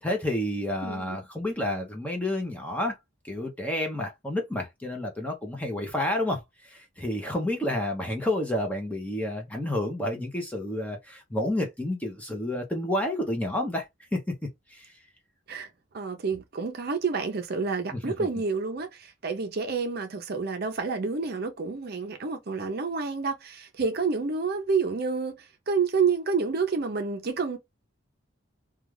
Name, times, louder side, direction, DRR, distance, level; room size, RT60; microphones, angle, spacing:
voice 1, 0.0-3.0 3.2-14.3 14.7-15.0 17.9-18.3, left 1 dB, 5° left, 0.6 m, -30 dB
voice 2, 0.8-1.2 15.5-15.7 15.9-27.6, right 5 dB, 50° right, 0.5 m, -29 dB
2.3 x 2.3 x 3.1 m
head